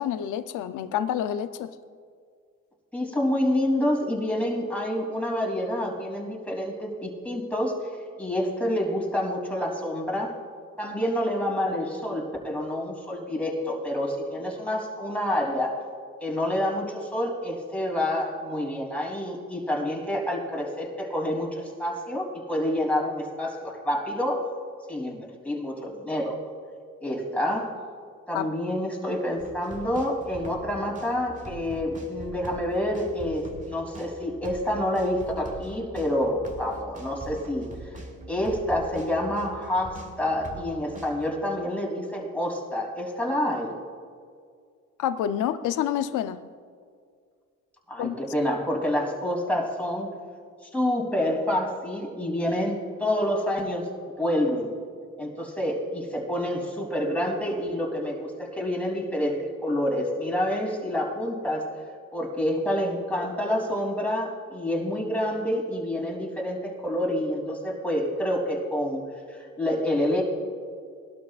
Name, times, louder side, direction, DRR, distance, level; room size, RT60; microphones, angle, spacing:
voice 1, 0.0-1.7 28.3-28.5 45.0-46.4 48.0-48.2, left 10 dB, 85° left, 11 dB, 0.7 m, -28 dB
voice 2, 2.9-7.8 8.2-10.4 10.8-15.8 16.2-24.5 24.9-26.4 27.0-27.7 28.3-37.7 38.3-43.7 47.9-50.1 50.7-53.9 54.2-54.7 55.2-61.7 62.1-69.0 69.3-70.2, left 1 dB, 5° left, -2 dB, 3.2 m, -28 dB
sound 1, 29.4-41.3, right 2 dB, 25° right, 1.7 m, -43 dB
20.0 x 12.0 x 2.5 m, 2.1 s
cardioid pair, 90°, 30 cm